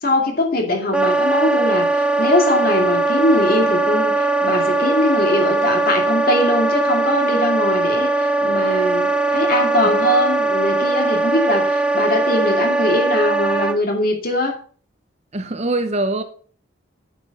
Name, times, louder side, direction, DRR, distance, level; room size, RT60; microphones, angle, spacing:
voice 1, 0.0-14.6, left 1 dB, 45° left, 3 dB, 2.4 m, -21 dB
Wind instrument woodwind instrument, 0.9-13.8, right 2 dB, 5° right, 0.4 m, -19 dB
voice 2, 15.3-16.2, right 2 dB, 35° right, 9 dB, 0.9 m, -22 dB
9.0 x 7.0 x 5.5 m, 0.43 s
head